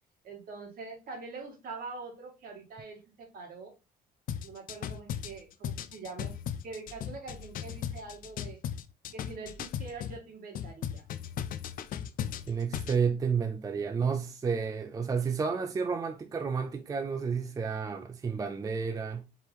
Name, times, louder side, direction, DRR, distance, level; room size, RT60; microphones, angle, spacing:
voice 1, 0.2-3.7 4.4-6.4 6.6-8.6 9.1-11.0, right 4 dB, 60° right, 1.8 m, -44 dB
sound 1, 4.3-10.2 10.5-13.0, left 9 dB, 55° left, 0.4 m, -37 dB
voice 2, 12.5-19.2, right 5 dB, 20° right, 0.4 m, -31 dB
4.5 x 2.9 x 3.3 m
cardioid pair, 110°, 17 cm